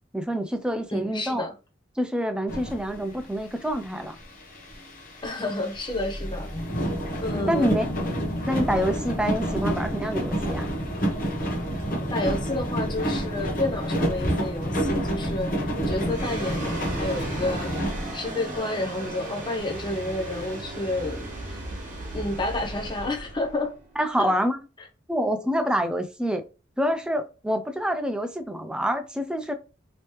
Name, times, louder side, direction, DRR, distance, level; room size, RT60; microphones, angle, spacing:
voice 1, 0.1-1.5 2.0-4.2 7.4-7.9 8.5-10.6 24.0-24.6 25.1-26.4 26.8-29.5, equal, 5° right, 0.3 m, -26 dB
voice 2, 0.9-1.5 5.2-6.5 7.2-7.7 12.0-15.5 15.9-17.7 18.1-21.6 22.1-23.7 24.2-24.3, left 2 dB, 25° left, 0.7 m, -30 dB
sound 1, 2.5-3.3 3.6-18.6 19.1-19.2 19.4-20.6, equal, 45° left, 1.0 m, -29 dB
Bass guitar, 7.3-13.5, left 4 dB, 65° left, 0.5 m, -44 dB
sound 2, 16.1-24.6, right 2 dB, 40° right, 1.2 m, -37 dB
3.1 x 3.0 x 3.0 m
head